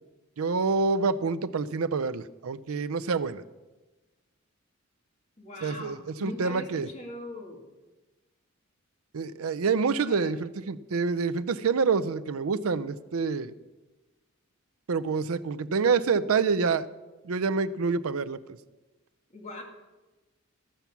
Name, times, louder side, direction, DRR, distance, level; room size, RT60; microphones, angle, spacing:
voice 1, 0.4-3.4 5.6-6.9 9.1-13.5 14.9-16.9 17.2-18.4, right 5 dB, 85° right, 14 dB, 0.5 m, -27 dB
voice 2, 5.4-7.6 10.1-10.3 19.3-19.6, left 1 dB, 35° left, 0 dB, 2.2 m, -41 dB
14.5 x 5.9 x 7.0 m, 1.1 s
head